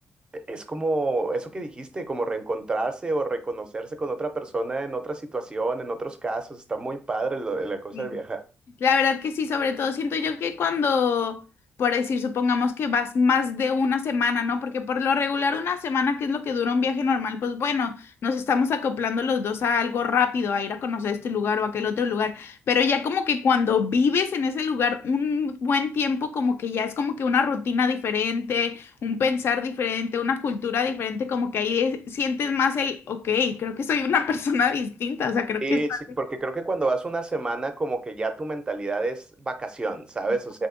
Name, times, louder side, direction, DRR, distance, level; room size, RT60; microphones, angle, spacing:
voice 1, 0.3-8.4 35.6-35.9 36.2-40.7, right 2 dB, 20° right, 0.4 m, -29 dB
voice 2, 8.8-11.4 11.8-36.0, left 5 dB, 60° left, 0.4 m, -24 dB
3.4 x 2.6 x 2.5 m
wide cardioid pair, 145°, 5 cm